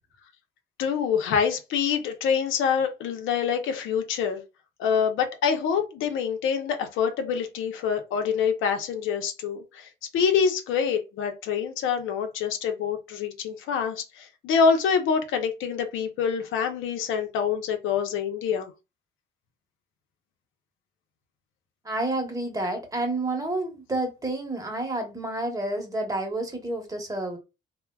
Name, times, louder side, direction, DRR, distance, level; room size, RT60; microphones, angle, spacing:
voice 1, 0.8-4.4 4.8-18.7, left 6 dB, 85° left, 0.6 m, -26 dB
voice 2, 21.8-27.4, right 2 dB, 15° right, 1.0 m, -29 dB
3.2 x 2.1 x 2.2 m
cardioid pair, 90°, 20 cm